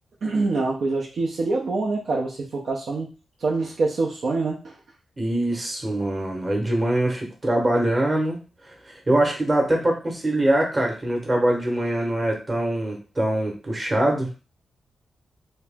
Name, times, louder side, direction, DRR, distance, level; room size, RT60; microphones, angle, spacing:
voice 1, 0.2-3.1 3.4-4.7, right 3 dB, 55° right, -3 dB, 0.6 m, -25 dB
voice 2, 5.2-8.4 8.8-14.3, right 1 dB, 25° right, 0 dB, 1.0 m, -23 dB
3.0 x 2.9 x 3.5 m, 0.33 s
wide cardioid pair, 140°, 0 cm